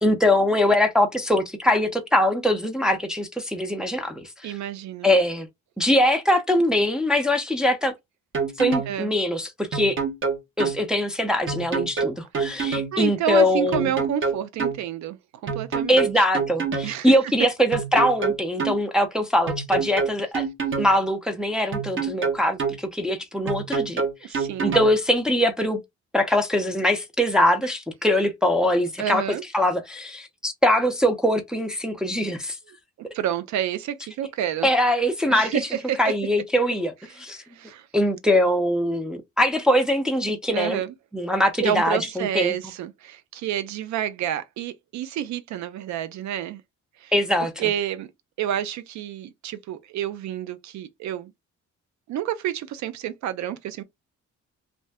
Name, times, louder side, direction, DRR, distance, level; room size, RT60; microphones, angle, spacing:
voice 1, 0.0-4.6 5.0-5.5 5.8-7.9 8.6-10.0 10.6-13.9 15.9-20.5 20.8-25.8 26.1-29.2 29.5-32.6 34.6-35.6 36.0-36.9 37.2-37.4 37.9-40.8 41.1-42.6 47.1-47.6, left 1 dB, ahead, 0.6 m, -22 dB
voice 2, 4.4-5.1 8.9-9.1 12.4-16.1 16.8-17.2 24.2-24.8 29.0-29.4 33.1-34.7 35.3-36.1 37.5-37.9 40.5-40.9 41.6-46.6 47.0-47.1 47.4-48.1 48.4-51.3 52.1-53.8, right 10 dB, 70° right, 0.5 m, -29 dB
sound 1, 8.3-8.9 9.7-10.8 11.5-12.9 13.7-14.8 15.5-16.9 17.7-18.8 19.5-20.9 21.7-22.8 23.5-24.9, right 5 dB, 40° right, 1.0 m, -26 dB
2.5 x 2.1 x 3.4 m
cardioid pair, 90°, 30 cm